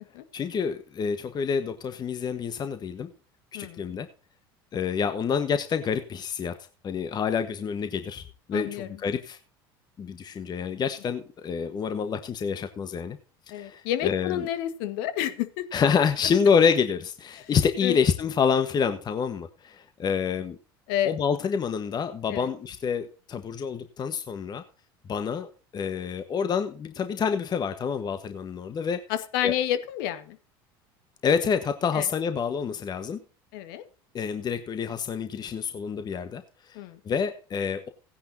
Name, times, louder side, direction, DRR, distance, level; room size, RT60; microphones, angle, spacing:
voice 1, 0.3-3.1 3.5-4.1 4.7-6.5 6.8-9.4 10.0-13.2 13.5-14.5 15.7-20.5 21.0-24.6 25.1-29.0 29.4-29.5 31.2-33.2 34.1-36.4 36.7-36.8 37.1-37.9, left 6 dB, 35° left, 9 dB, 1.3 m, -27 dB
voice 2, 3.5-4.0 8.5-9.0 13.5-15.6 17.3-17.5 17.8-18.0 20.9-21.1 22.3-22.5 29.1-30.4 31.9-32.1 33.5-33.8 36.7-37.0, left 12 dB, 70° left, 11 dB, 1.6 m, -30 dB
17.0 x 10.0 x 2.8 m, 0.36 s
hypercardioid pair, 80°, 12 cm